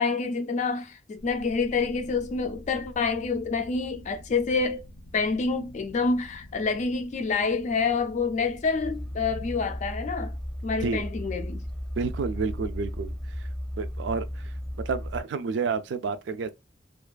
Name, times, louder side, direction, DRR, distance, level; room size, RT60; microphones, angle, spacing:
voice 1, 0.0-4.8 5.1-10.4 10.6-11.6, left 4 dB, 40° left, 0.3 m, -27 dB
sound 1, 1.2-9.6, left 1 dB, 85° left, 0.6 m, -47 dB
sound 2, 8.8-15.2, equal, 5° left, 0.7 m, -35 dB
voice 2, 12.0-13.1 13.8-14.3 14.9-16.5, right 5 dB, 70° right, 0.3 m, -29 dB
2.5 x 2.3 x 2.2 m
head